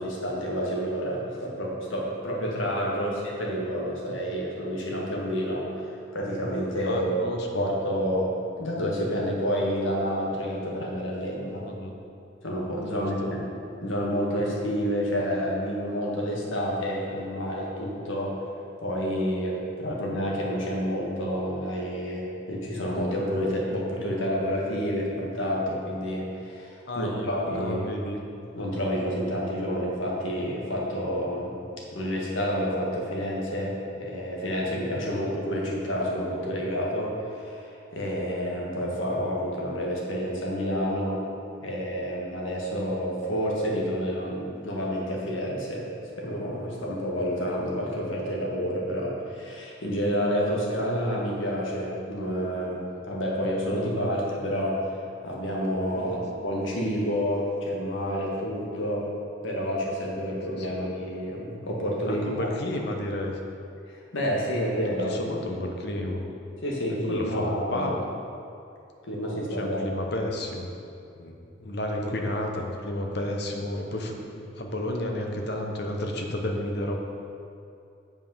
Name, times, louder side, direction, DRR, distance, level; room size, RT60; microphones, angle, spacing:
voice 1, 0.0-5.7 6.1-7.1 7.5-8.3 8.6-11.6 12.4-13.4 13.8-18.3 18.8-27.9 28.5-31.5 31.9-41.2 41.6-45.9 46.2-54.8 55.2-59.0 59.4-62.5 63.9-65.1 65.4-65.7 66.6-67.9 69.0-69.8 72.0-72.1, equal, 80° left, -3 dB, 1.6 m, -29 dB
voice 2, 6.8-7.6 11.6-11.9 12.9-13.3 19.9-20.0 26.9-28.2 35.0-35.2 56.0-56.2 60.5-60.8 62.1-63.4 65.0-66.2 67.1-68.0 69.6-70.7 71.2-77.0, left 1 dB, 55° left, 2 dB, 0.9 m, -32 dB
7.4 x 5.3 x 5.6 m, 2.6 s
head